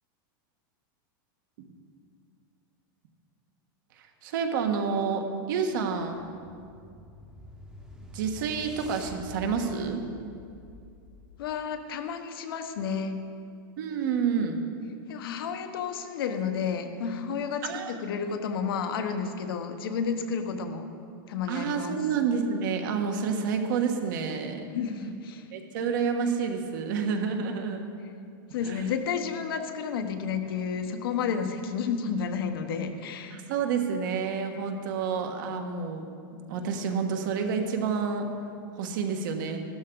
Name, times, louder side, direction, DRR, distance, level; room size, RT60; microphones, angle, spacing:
voice 1, 3.9-6.3 8.1-10.1 13.8-14.6 17.6-18.0 21.5-24.7 25.5-27.8 28.6-28.9 33.3-36.1 36.5-38.3 38.7-39.6, right 6 dB, 65° right, 4 dB, 1.4 m, -29 dB
sound 1, 5.4-11.7, left 1 dB, 5° right, 0.9 m, -48 dB
voice 2, 11.4-13.2 15.1-20.9 21.3-22.0 24.7-25.4 28.5-33.4, left 6 dB, 85° left, 7 dB, 1.2 m, -31 dB
14.5 x 12.5 x 3.9 m, 2.4 s
supercardioid pair, 165°, 12 cm